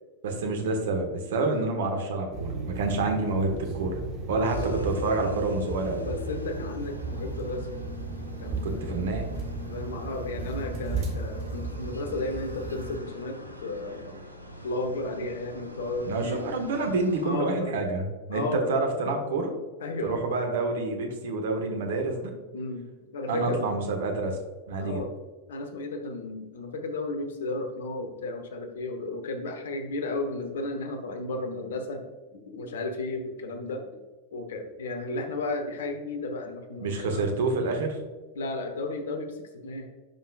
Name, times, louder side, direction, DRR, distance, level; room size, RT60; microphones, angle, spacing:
voice 1, 0.2-4.0 4.3-6.0 8.6-9.3 16.0-19.5 20.0-22.3 23.3-24.4 24.7-25.0 36.8-38.0, right 3 dB, 60° right, 4 dB, 1.4 m, -28 dB
sound 1, 2.3-13.0, right 2 dB, 40° right, 1.5 m, -35 dB
sound 2, 4.4-17.2, equal, 90° left, 0.8 m, -44 dB
voice 2, 4.5-4.9 6.0-7.7 8.4-9.0 9.6-14.2 14.6-16.5 17.2-17.7 18.3-18.7 19.0-19.1 19.8-20.2 22.5-22.9 23.1-23.8 24.8-25.1 25.5-33.8 34.3-37.3 38.3-39.4 39.6-39.9, left 2 dB, 60° left, 6 dB, 1.0 m, -33 dB
10.5 x 5.7 x 2.4 m, 1.3 s
figure-of-eight pair, 90°, 0 cm